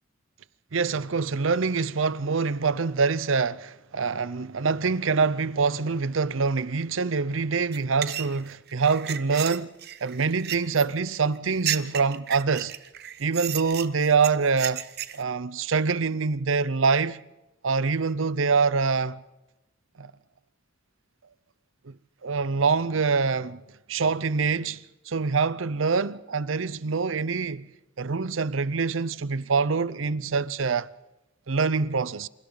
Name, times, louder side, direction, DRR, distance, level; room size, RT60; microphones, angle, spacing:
voice 1, 0.7-9.7 10.0-12.7 13.2-14.8 15.1-17.2 17.6-19.2 20.0-20.1 21.8-21.9 22.2-23.6 23.9-27.7 28.0-30.9 31.5-32.3, right 4 dB, 80° right, 0.7 m, -25 dB
sound 1, 7.7-15.2, right 11 dB, 55° right, 1.0 m, -33 dB
28.0 x 27.5 x 4.0 m
head